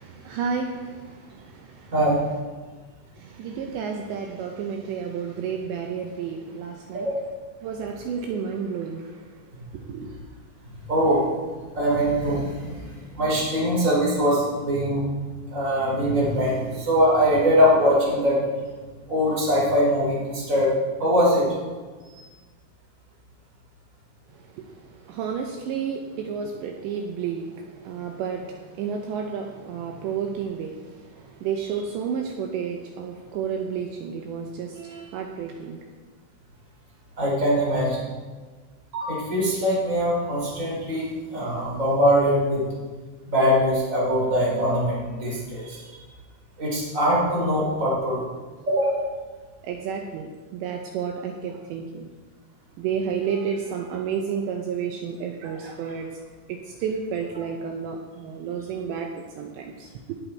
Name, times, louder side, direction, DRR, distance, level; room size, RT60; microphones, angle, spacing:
voice 1, 0.0-1.9 3.2-7.1 7.6-9.4 9.7-10.2 24.3-35.9 37.6-38.0 41.0-41.1 49.6-52.1 52.8-56.2 56.5-60.2, right 6 dB, 80° right, 2 dB, 2.7 m, -31 dB
voice 2, 10.9-11.3 11.7-12.9 13.1-15.0 15.5-18.4 19.1-20.7 21.0-21.5 37.2-37.9 38.9-41.0 41.3-42.6 43.3-46.0 46.6-48.3 48.7-49.0, equal, 15° right, -6 dB, 4.4 m, -22 dB
18.0 x 8.1 x 4.5 m, 1.4 s
omnidirectional pair, 5.9 m